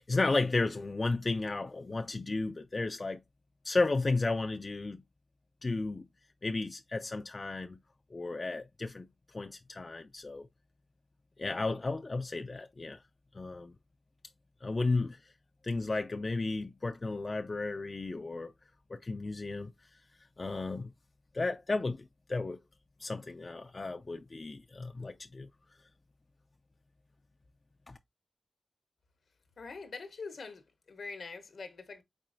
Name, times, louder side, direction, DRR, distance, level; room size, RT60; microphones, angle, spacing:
voice 1, 0.1-3.2 3.6-5.0 5.6-6.0 6.4-7.8 8.1-9.1 9.3-10.5 11.4-13.0 13.3-13.7 14.6-15.2 15.6-18.5 18.9-19.7 20.4-20.9 21.3-22.0 22.3-22.6 23.0-25.5 27.9-28.0, left 3 dB, 40° left, 0.4 m, -33 dB
voice 2, 29.6-32.0, left 4 dB, 80° left, 0.9 m, -44 dB
4.4 x 4.4 x 2.5 m
wide cardioid pair, 75°, 0 cm